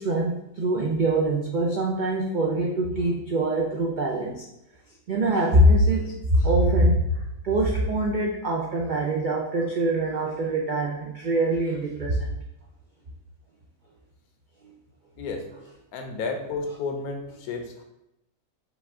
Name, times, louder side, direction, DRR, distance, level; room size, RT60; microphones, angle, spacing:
voice 1, 0.0-4.4 5.1-7.1 7.4-12.3, right 1 dB, 90° right, -2 dB, 0.4 m, -23 dB
voice 2, 15.2-15.6 15.9-17.8, left 4 dB, 80° left, 4 dB, 1.1 m, -32 dB
5.0 x 2.4 x 3.6 m, 0.85 s
omnidirectional pair, 1.6 m